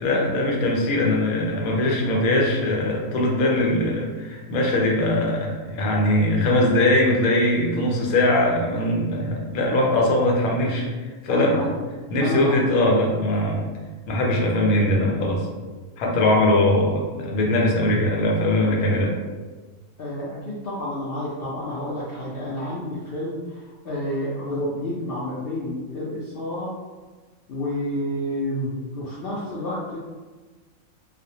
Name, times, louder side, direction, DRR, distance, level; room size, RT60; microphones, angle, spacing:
voice 1, 0.0-10.9 11.2-11.6 12.1-13.7 14.1-15.5 16.0-19.1, left 1 dB, 85° left, -1 dB, 1.1 m, -21 dB
voice 2, 11.3-11.7 12.2-12.5 12.8-13.2 20.0-26.7 27.5-30.0, left 1 dB, 70° left, -7 dB, 0.5 m, -30 dB
2.4 x 2.1 x 2.7 m, 1.3 s
omnidirectional pair, 1.5 m